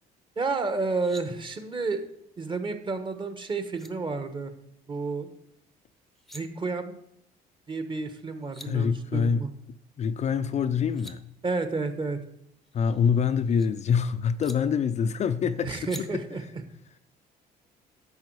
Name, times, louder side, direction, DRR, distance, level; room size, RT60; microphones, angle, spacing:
voice 1, 0.4-2.0 2.4-4.5 4.9-5.3 6.3-7.0 7.7-9.5 11.4-12.2 15.6-16.4, right 3 dB, 30° right, 1.3 m, -30 dB
sound 1, 0.8-1.2 3.3-3.4 3.7-3.9 6.0-6.4 8.1-8.2 8.3-8.7 10.6-11.2 12.6-13.7 14.4-14.6 15.8-16.0, equal, ahead, 0.8 m, -46 dB
voice 2, 8.6-9.5 10.0-11.2 12.7-16.2, left 6 dB, 40° left, 0.5 m, -25 dB
10.5 x 6.9 x 4.7 m
cardioid pair, 110°, 17 cm